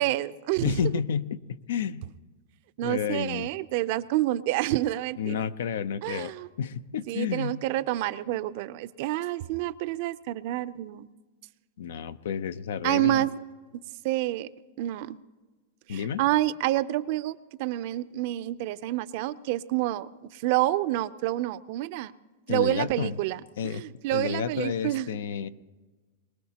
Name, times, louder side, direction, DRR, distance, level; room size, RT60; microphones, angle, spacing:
voice 1, 0.0-0.8 2.8-5.4 6.0-6.5 7.1-11.1 12.8-13.3 14.0-14.5 14.8-15.1 15.9-22.1 22.5-25.2, right 15 dB, 55° right, 15 dB, 0.5 m, -28 dB
voice 2, 0.6-2.0 2.8-3.5 5.2-7.6 11.8-13.3 15.9-16.2 22.5-23.2 23.6-23.8 24.1-25.5, left 7 dB, 80° left, 14 dB, 0.6 m, -30 dB
23.0 x 20.5 x 2.9 m, 1.3 s
supercardioid pair, 135°, 0 cm